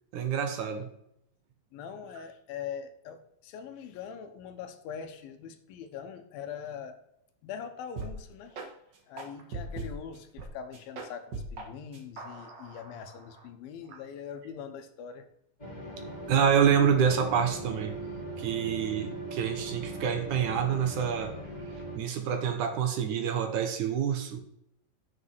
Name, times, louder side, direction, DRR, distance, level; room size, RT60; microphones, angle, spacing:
voice 1, 0.1-0.9 16.3-18.0 18.4-21.4 22.0-24.4, right 7 dB, 70° right, 6 dB, 2.3 m, -27 dB
voice 2, 1.7-7.0 7.4-8.7 9.1-15.3, left 7 dB, 85° left, 8 dB, 2.8 m, -42 dB
sound 1, 8.0-8.2 8.5-8.7 9.2-10.5 10.7-11.7 11.9-13.4, right 3 dB, 50° right, 1.3 m, -40 dB
sound 2, 15.6-22.0, right 1 dB, 15° left, 1.9 m, -39 dB
7.9 x 6.6 x 6.0 m, 0.76 s
omnidirectional pair, 4.1 m